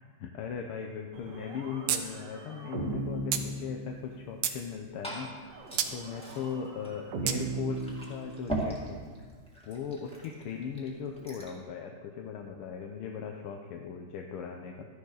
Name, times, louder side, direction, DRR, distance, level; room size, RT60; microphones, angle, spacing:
voice 1, 0.2-5.3 5.9-9.0 9.7-14.9, left 6 dB, 80° left, 3 dB, 1.6 m, -38 dB
sound 1, 1.1-4.4 5.5-8.8, right 2 dB, 60° right, 1.8 m, -38 dB
sound 2, 1.9-2.0 2.3-2.4 3.3-3.5 4.1-4.6 5.8-5.9 7.3-7.4, right 9 dB, 80° right, 1.6 m, -29 dB
Glass / Fill (with liquid), 4.5-11.6, right 1 dB, 5° left, 2.0 m, -41 dB
13.0 x 10.5 x 4.0 m, 1.5 s
omnidirectional pair, 2.4 m